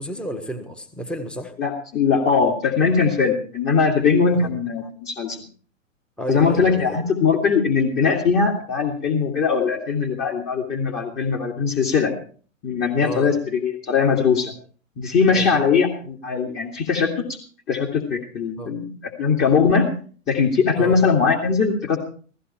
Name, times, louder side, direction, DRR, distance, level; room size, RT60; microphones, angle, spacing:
voice 1, 0.0-1.5 4.3-4.5 6.2-7.0 13.0-13.3 15.3-15.6 18.6-18.8 20.8-21.0, equal, ahead, 6 dB, 1.4 m, -31 dB
voice 2, 1.6-5.4 6.3-12.1 12.6-14.5 15.0-17.4 17.7-19.9 20.3-22.0, left 5 dB, 25° left, 0 dB, 2.4 m, -20 dB
16.5 x 15.0 x 4.4 m, 0.43 s
hypercardioid pair, 120°, 39 cm